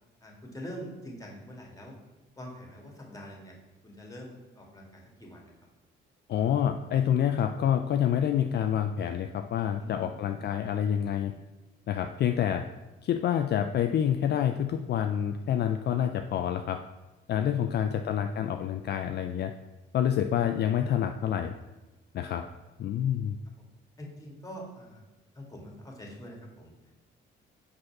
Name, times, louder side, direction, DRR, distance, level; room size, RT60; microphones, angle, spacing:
voice 1, 0.2-2.0 2.4-3.6 3.8-5.5 9.8-10.5 20.9-21.0 24.0-25.0 25.4-26.7, equal, 15° left, 0 dB, 1.9 m, -45 dB
voice 2, 6.3-11.3 11.9-12.6 13.0-16.8 17.3-19.5 19.9-21.5 22.1-22.4 22.8-23.4, left 9 dB, 55° left, 7 dB, 0.4 m, -27 dB
5.2 x 4.1 x 5.9 m, 1.1 s
cardioid pair, 90°, 20 cm